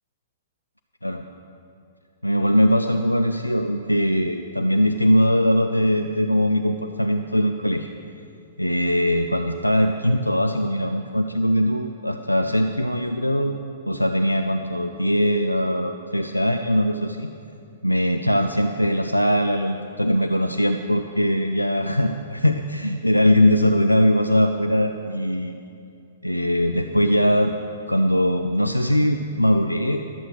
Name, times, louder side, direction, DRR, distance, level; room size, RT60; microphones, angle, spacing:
voice 1, 2.2-7.9 8.6-13.5 13.9-17.3 17.8-25.6 26.2-27.5 27.9-30.0, equal, 85° left, 6 dB, 0.4 m, -21 dB
12.5 x 7.9 x 6.1 m, 2.5 s
figure-of-eight pair, 110°, 0 cm